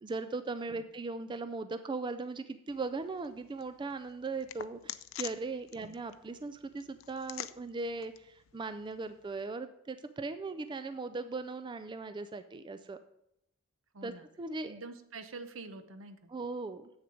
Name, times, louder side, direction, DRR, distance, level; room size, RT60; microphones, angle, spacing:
voice 1, 0.0-13.0 14.0-14.1 14.4-14.8 16.3-16.9, right 3 dB, 25° right, 10 dB, 0.3 m, -38 dB
sound 1, 2.7-9.5, left 12 dB, 70° left, 0.4 m, -48 dB
voice 2, 13.9-14.3 14.6-16.3, right 3 dB, 70° right, 10 dB, 0.8 m, -46 dB
8.0 x 6.8 x 5.1 m, 0.79 s
head